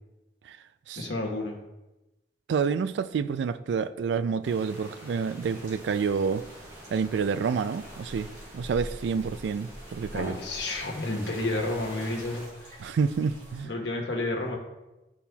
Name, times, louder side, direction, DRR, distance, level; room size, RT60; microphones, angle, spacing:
voice 1, 1.0-1.6 10.1-12.7 13.6-14.6, left 2 dB, 85° left, 1.1 m, -31 dB
voice 2, 2.5-6.4 6.9-10.4 12.8-13.7, right 5 dB, 80° right, 0.3 m, -28 dB
sound 1, 4.4-12.5, right 1 dB, 15° right, 1.5 m, -47 dB
sound 2, 5.4-13.6, equal, 50° right, 2.2 m, -47 dB
10.5 x 4.2 x 2.3 m
head